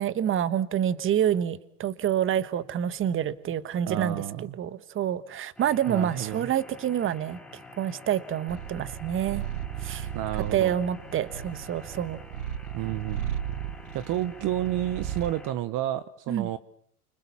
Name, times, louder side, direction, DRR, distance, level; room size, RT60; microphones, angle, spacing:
voice 1, 0.0-4.2 4.5-7.4 7.8-9.4 9.8-10.1 10.5-12.2 16.3-16.5, right 10 dB, 25° right, 16 dB, 1.3 m, -27 dB
voice 2, 3.8-4.5 5.9-6.5 10.1-10.7 12.8-13.3 13.9-16.6, right 13 dB, 40° right, 15 dB, 1.1 m, -30 dB
sound 1, 5.6-15.5, left 2 dB, ahead, 4.1 m, -48 dB
Purr, 8.5-15.4, right 10 dB, 70° right, 1.6 m, -36 dB
29.0 x 26.0 x 7.1 m, 0.63 s
supercardioid pair, 125°, 47 cm